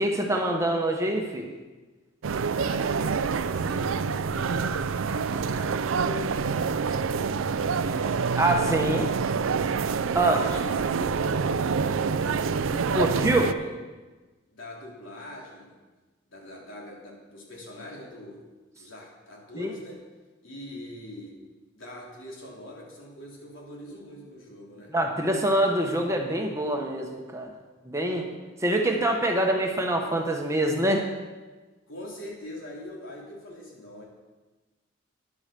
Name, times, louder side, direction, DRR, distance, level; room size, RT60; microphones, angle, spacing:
voice 1, 0.0-1.5 8.4-9.1 10.1-10.4 12.9-13.4 19.6-19.7 24.9-27.5 27.9-28.3 28.6-31.0, right 1 dB, 15° right, 2 dB, 1.0 m, -25 dB
sound 1, 2.2-13.5, right 5 dB, 75° right, 0.4 m, -27 dB
voice 2, 2.5-8.1 8.7-9.7 10.0-13.8 14.5-15.8 16.3-18.4 18.8-20.0 20.4-21.3 21.7-24.9 31.9-34.0, left 1 dB, 75° left, -3 dB, 3.4 m, -42 dB
11.0 x 7.9 x 6.8 m, 1.2 s
head